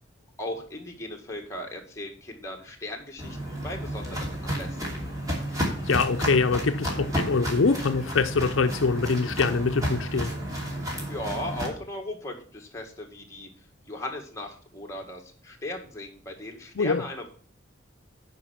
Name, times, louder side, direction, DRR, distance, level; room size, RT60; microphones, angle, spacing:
voice 1, 0.4-4.9 11.1-13.5 13.9-17.3, left 1 dB, 15° left, 1.8 m, -37 dB
Walk footsteps, 3.2-11.7, equal, 20° right, 2.6 m, -32 dB
voice 2, 5.8-10.3 16.8-17.0, left 4 dB, 75° left, 0.6 m, -24 dB
9.4 x 5.4 x 5.6 m
head